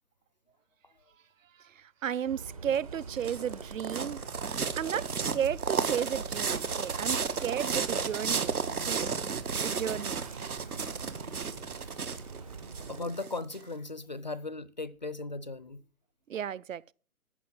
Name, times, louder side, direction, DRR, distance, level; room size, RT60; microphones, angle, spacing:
voice 1, 1.6-4.2 4.8-8.5 8.8-9.0 9.5-10.2 16.3-16.8, right 9 dB, 65° right, 0.6 m, -33 dB
Karakoy Neighborhood in Istanbul, 2.2-13.0, right 4 dB, 25° right, 0.6 m, -44 dB
sound 1, 2.7-13.6, right 5 dB, 85° right, 1.5 m, -33 dB
voice 2, 12.9-15.8, left 3 dB, 35° left, 0.4 m, -38 dB
14.5 x 5.7 x 7.4 m
figure-of-eight pair, 155°, 43 cm